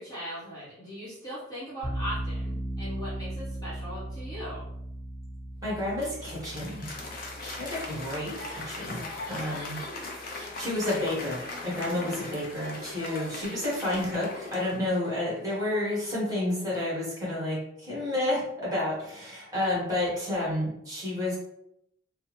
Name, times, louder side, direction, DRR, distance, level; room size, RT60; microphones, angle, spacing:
voice 1, 0.0-4.6, equal, 20° left, -9 dB, 1.0 m, -39 dB
sound 1, 1.8-10.7, right 1 dB, 80° left, 1.0 m, -38 dB
voice 2, 5.6-6.9 7.4-9.8 10.2-21.4, left 1 dB, 20° right, -6 dB, 1.3 m, -30 dB
Applause, 5.7-15.3, left 2 dB, 50° left, 0.5 m, -40 dB
3.4 x 2.0 x 3.0 m, 0.76 s
head